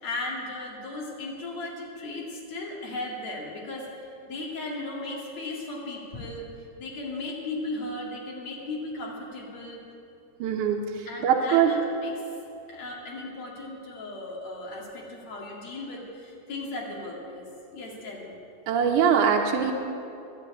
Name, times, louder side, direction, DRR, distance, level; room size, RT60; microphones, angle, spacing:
voice 1, 0.0-3.9 4.3-6.5 6.8-9.8 11.1-12.2 12.7-17.5 17.7-18.3, left 2 dB, 45° left, -2 dB, 3.1 m, -36 dB
voice 2, 10.4-10.8 11.2-11.7 18.7-19.7, right 8 dB, 75° right, 1 dB, 1.9 m, -22 dB
12.5 x 10.5 x 8.7 m, 2.6 s
omnidirectional pair, 4.9 m